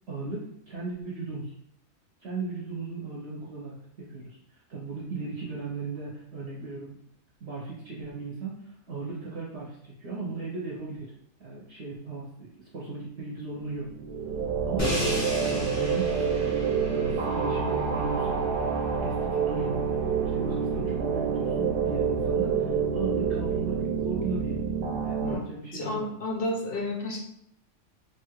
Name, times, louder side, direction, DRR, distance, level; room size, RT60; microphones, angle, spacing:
voice 1, 0.1-1.5 2.2-7.0 7.4-11.1 11.4-13.9 14.6-15.1 15.4-18.4 19.0-19.8 20.2-24.6 25.0-26.1, right 3 dB, 55° right, -6 dB, 0.8 m, -37 dB
sound 1, 13.8-25.3, right 6 dB, 80° right, 1.0 m, -28 dB
Crash cymbal, 14.8-20.8, left 1 dB, 20° left, 0.5 m, -36 dB
voice 2, 25.7-27.2, left 1 dB, 70° left, -1 dB, 0.5 m, -31 dB
2.9 x 2.4 x 2.9 m, 0.75 s
omnidirectional pair, 1.5 m